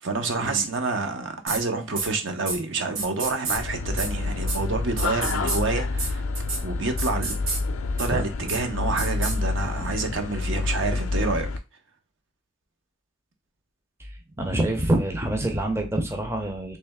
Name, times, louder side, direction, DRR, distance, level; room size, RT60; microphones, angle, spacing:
voice 1, 0.0-6.2 6.6-7.4 8.0-11.5, right 3 dB, 65° right, 0.7 m, -28 dB
sound 1, 1.5-1.6 2.0-2.1 2.5-2.6 3.0-3.6 4.0-4.1 4.5-4.6 5.0-5.6 6.0-6.1 6.3-6.6 7.0-7.6 8.0-8.1 8.5-8.6 9.0-9.3, right 4 dB, 85° right, 1.1 m, -29 dB
sound 2, 3.6-11.6, left 3 dB, 85° left, 0.4 m, -28 dB
voice 2, 14.4-16.8, right 1 dB, 15° right, 0.5 m, -26 dB
3.2 x 3.1 x 3.4 m
head